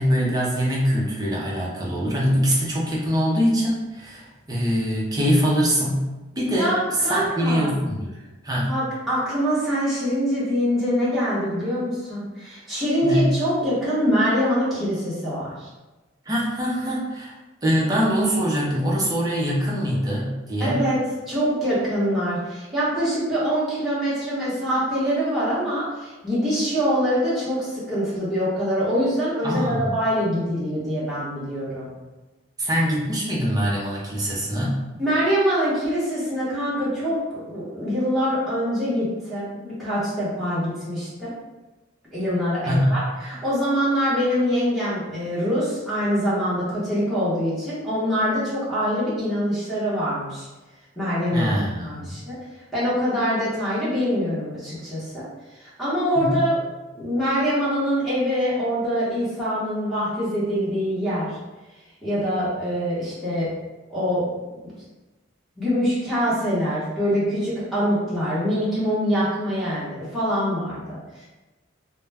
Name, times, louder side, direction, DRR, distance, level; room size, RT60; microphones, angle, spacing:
voice 1, 0.0-6.1 6.4-8.1 8.4-8.7 13.0-13.3 16.3-17.3 17.6-20.8 29.4-29.9 32.6-34.8 42.7-43.0 51.3-52.1 56.2-56.4, equal, 20° right, -4 dB, 0.5 m, -23 dB
voice 2, 6.6-7.7 8.6-15.7 20.6-21.0 21.3-31.9 35.0-41.3 42.1-50.5 51.0-51.5 51.8-52.3 52.7-55.2 55.5-56.6 56.9-61.4 62.0-63.5 63.9-64.3 65.6-71.2, equal, ahead, -11 dB, 0.8 m, -24 dB
2.2 x 2.1 x 3.3 m, 1.1 s
head